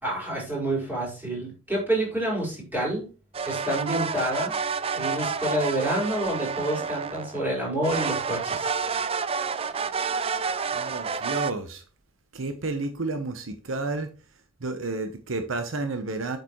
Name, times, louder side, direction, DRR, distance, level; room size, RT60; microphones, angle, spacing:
voice 1, 0.0-3.0 3.4-4.5 4.9-8.7, right 1 dB, 10° right, 4.4 m, -28 dB
sound 1, 3.3-7.5 7.8-11.5, right 5 dB, 30° right, 0.4 m, -29 dB
voice 2, 10.7-11.8 12.3-14.1 14.6-16.4, right 3 dB, 70° right, 0.9 m, -31 dB
8.2 x 6.6 x 3.1 m
head